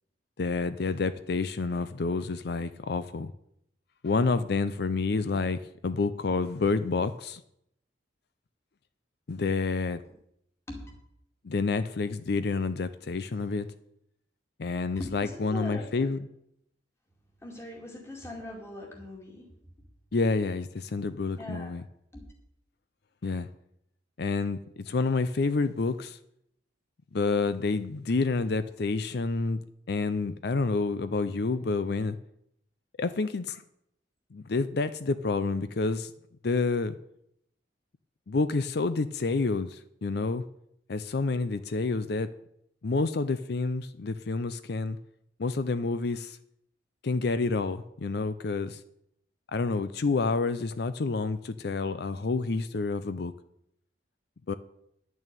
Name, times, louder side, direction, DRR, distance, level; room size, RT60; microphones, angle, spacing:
voice 1, 0.4-3.3 4.0-7.4 9.3-10.0 11.4-13.7 14.6-16.3 20.1-21.8 23.2-23.5 24.2-26.2 27.1-29.6 29.9-32.2 33.0-33.6 34.3-36.1 36.4-37.0 38.3-40.4 40.9-42.3 42.8-45.0 45.4-46.4 47.0-48.8 49.5-53.3 54.5-54.6, left 3 dB, 60° left, 13 dB, 0.5 m, -29 dB
voice 2, 15.0-16.1 17.4-19.5 21.4-21.7 22.1-22.2, left 1 dB, 15° left, -1 dB, 2.3 m, -41 dB
10.5 x 6.3 x 9.0 m, 0.76 s
head